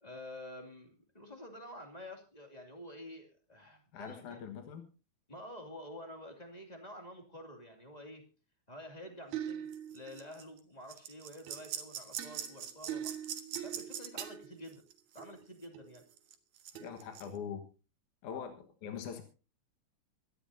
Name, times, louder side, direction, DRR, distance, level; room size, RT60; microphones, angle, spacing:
voice 1, 0.0-4.4 5.3-8.3 8.7-13.2 13.6-14.8 15.1-16.0, left 1 dB, 15° left, 3 dB, 2.2 m, -49 dB
voice 2, 3.9-4.9 16.8-17.6 18.2-19.2, left 7 dB, 80° left, 5 dB, 2.9 m, -42 dB
sound 1, 9.3-10.6 10.9-15.5 15.7-17.3, right 10 dB, 70° right, 2.7 m, -41 dB
25.0 x 11.5 x 2.7 m, 0.32 s
omnidirectional pair, 3.5 m